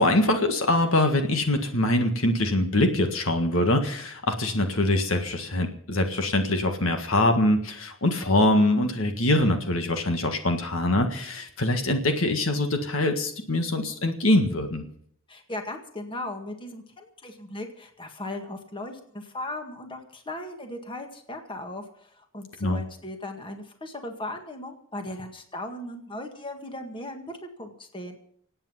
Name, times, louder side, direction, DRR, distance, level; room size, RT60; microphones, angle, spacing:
voice 1, 0.0-14.9 22.6-22.8, left 1 dB, 75° left, 6 dB, 1.7 m, -23 dB
voice 2, 15.3-28.2, left 1 dB, 25° left, 4 dB, 1.9 m, -37 dB
24.5 x 8.9 x 5.7 m, 0.64 s
head